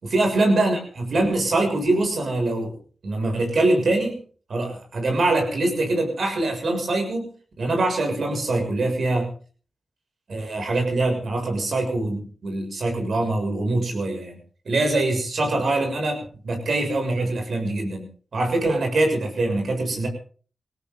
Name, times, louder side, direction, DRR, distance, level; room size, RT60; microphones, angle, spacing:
voice 1, 0.0-2.7 3.0-4.2 4.5-7.3 7.6-9.3 10.3-14.4 14.7-18.0 18.3-20.1, right 2 dB, 70° right, 4 dB, 6.8 m, -23 dB
21.5 x 17.0 x 3.9 m, 0.42 s
cardioid pair, 50°, 0 cm